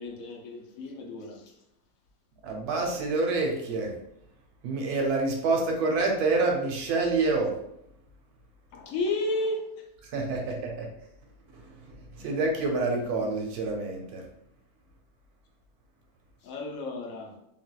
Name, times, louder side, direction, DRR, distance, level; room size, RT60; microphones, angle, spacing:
voice 1, 0.0-1.5 8.7-9.8 12.2-12.3 16.4-17.4, left 2 dB, 70° left, 0.9 m, -33 dB
voice 2, 2.4-3.9 4.6-7.5 10.1-10.9 12.2-14.2, right 3 dB, 85° right, 1.2 m, -27 dB
3.3 x 2.7 x 2.2 m
omnidirectional pair, 1.6 m